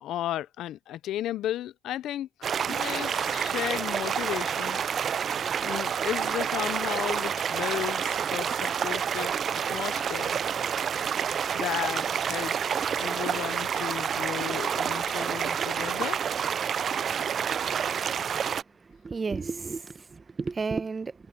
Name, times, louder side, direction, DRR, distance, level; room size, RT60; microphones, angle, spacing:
voice 1, 0.0-4.8 5.6-9.3 9.7-10.4 11.5-16.2, left 13 dB, 80° left, 0.5 m, -34 dB
sound 1, 2.4-18.6, right 8 dB, 55° right, 0.3 m, -29 dB
voice 2, 18.8-21.3, right 4 dB, 35° right, 1.0 m, -33 dB
cardioid pair, 90°, 0 cm